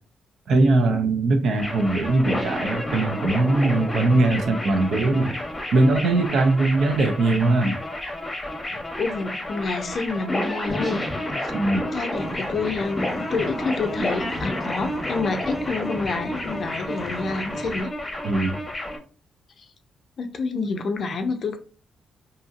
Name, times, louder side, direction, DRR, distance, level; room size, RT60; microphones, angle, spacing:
voice 1, 0.5-5.3 5.7-7.8 8.7-8.8 11.5-11.8 18.2-18.6, right 2 dB, 70° right, 0.5 m, -21 dB
sound 1, 1.6-19.0, left 1 dB, 20° left, 0.8 m, -30 dB
voice 2, 9.0-11.0 11.4-11.5 11.9-17.9 19.6-19.7 20.2-21.6, left 4 dB, 55° left, 0.4 m, -28 dB
Vehicle, 12.1-17.8, equal, 20° right, 0.8 m, -40 dB
2.7 x 2.7 x 2.4 m
cardioid pair, 105°, 0 cm